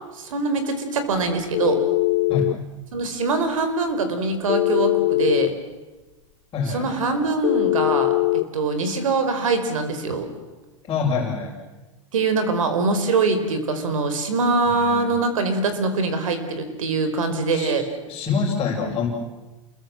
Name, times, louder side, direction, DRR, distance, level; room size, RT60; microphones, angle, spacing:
voice 1, 0.1-1.8 2.9-5.5 6.7-8.1 8.5-10.3 12.1-17.8, right 3 dB, 85° right, 9 dB, 4.7 m, -23 dB
Telephone, 1.5-2.6 4.5-5.5 7.4-8.5, left 22 dB, 50° left, 0.7 m, -21 dB
voice 2, 6.5-6.9 10.8-11.5 14.7-15.1 17.5-17.7 18.1-19.1, left 5 dB, 25° left, -4 dB, 5.1 m, -25 dB
28.5 x 22.0 x 7.6 m, 1.2 s
hypercardioid pair, 125°, 17 cm